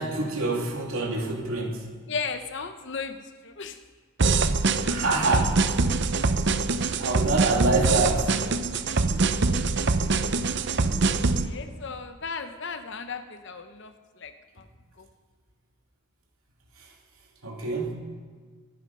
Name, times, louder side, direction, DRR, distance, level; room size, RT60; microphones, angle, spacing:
voice 1, 0.0-1.9 4.8-5.8 6.9-8.5 16.8-16.9 17.4-17.9, right 3 dB, 75° right, -1 dB, 3.0 m, -26 dB
voice 2, 2.1-3.8 10.0-10.1 11.4-14.7 15.0-15.1, left 5 dB, 55° left, 8 dB, 0.8 m, -36 dB
sound 1, 4.2-11.5, right 3 dB, 55° right, 0.7 m, -24 dB
25.5 x 9.7 x 5.5 m, 1.5 s
head